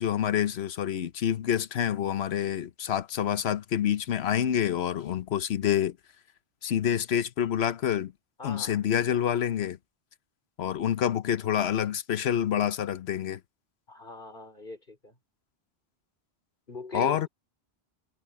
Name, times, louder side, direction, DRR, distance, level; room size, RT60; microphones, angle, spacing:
voice 1, 0.0-6.0 6.6-8.1 8.4-9.8 10.6-13.4 16.9-17.3, left 9 dB, 85° left, 1.0 m, -27 dB
voice 2, 8.4-8.8 13.9-15.2 16.7-17.3, left 3 dB, 55° left, 4.6 m, -41 dB
omnidirectional pair, 1.1 m